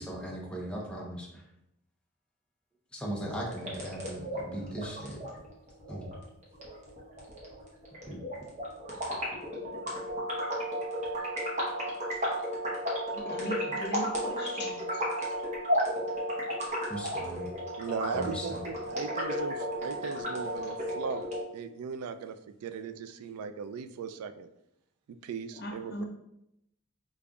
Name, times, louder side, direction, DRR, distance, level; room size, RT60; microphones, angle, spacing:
voice 1, 0.0-1.4 2.9-5.3 5.9-6.1 8.1-8.5 16.9-17.5 18.1-18.6, right 1 dB, 5° left, -2 dB, 0.6 m, -38 dB
sound 1, 3.4-21.4, equal, 30° right, 0.8 m, -34 dB
voice 2, 13.1-15.0 25.5-26.0, left 1 dB, 50° left, 2 dB, 0.5 m, -39 dB
voice 3, 17.8-21.3 21.5-24.5 25.1-26.0, right 6 dB, 85° right, 14 dB, 0.3 m, -38 dB
5.1 x 2.4 x 2.3 m, 0.81 s
head